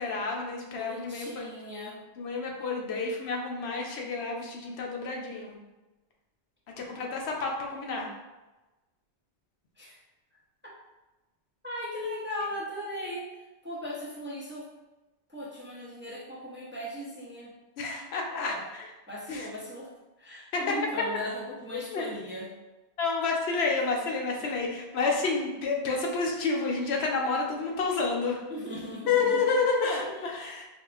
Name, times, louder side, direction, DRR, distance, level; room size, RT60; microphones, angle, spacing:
voice 1, 0.0-1.4 2.2-5.6 6.8-8.1 17.8-18.9 19.3-19.5 20.5-20.6 21.7-22.1 23.0-28.4 29.1-30.7, left 4 dB, 80° left, 0 dB, 0.9 m, -29 dB
voice 2, 0.7-2.0 9.8-10.0 11.6-13.3 13.6-14.7 15.3-17.5 18.3-18.6 19.1-19.9 20.2-22.5 28.5-29.5 30.0-30.3, left 1 dB, 15° right, -6 dB, 0.5 m, -38 dB
4.6 x 2.4 x 2.3 m, 1.1 s
omnidirectional pair, 1.1 m